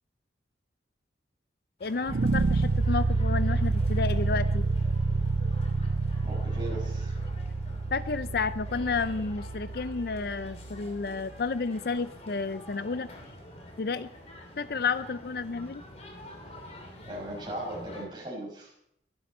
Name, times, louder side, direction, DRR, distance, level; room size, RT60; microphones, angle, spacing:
voice 1, 1.8-4.7 7.9-13.1 13.8-14.1 14.6-15.8, left 4 dB, 55° left, 14 dB, 0.5 m, -31 dB
sound 1, 1.8-18.1, left 1 dB, 35° left, 2.9 m, -47 dB
sound 2, 2.1-11.2, right 3 dB, 70° right, 0.5 m, -28 dB
voice 2, 6.2-7.2 17.1-18.7, right 1 dB, 25° right, -3 dB, 6.1 m, -38 dB
22.0 x 11.5 x 4.3 m, 0.75 s
head